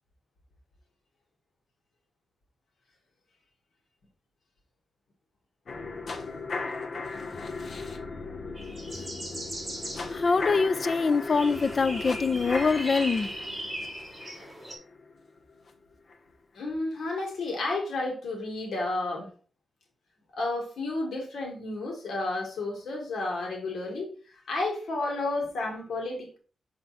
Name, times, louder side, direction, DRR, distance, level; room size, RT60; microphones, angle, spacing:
sound 1, 5.7-15.7 16.1-16.2, left 3 dB, 55° left, 0.9 m, -37 dB
sound 2, 8.6-14.7, right 1 dB, 15° right, 2.1 m, -39 dB
voice 1, 10.1-13.3, left 4 dB, 40° left, 0.4 m, -24 dB
voice 2, 16.6-19.3 20.3-24.1 24.5-26.4, left 2 dB, 80° left, 2.1 m, -31 dB
6.2 x 4.3 x 4.3 m
wide cardioid pair, 150°, 0 cm